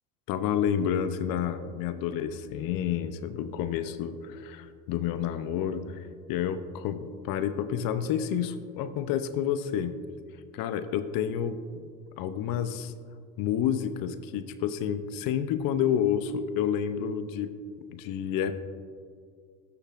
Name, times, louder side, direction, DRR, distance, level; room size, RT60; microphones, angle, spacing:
voice 1, 0.3-10.0 10.5-11.9 12.2-12.9 13.4-17.5 17.9-18.5, left 9 dB, 55° left, 11 dB, 0.7 m, -29 dB
13.0 x 6.7 x 2.5 m, 2.1 s
hypercardioid pair, 80°, 41 cm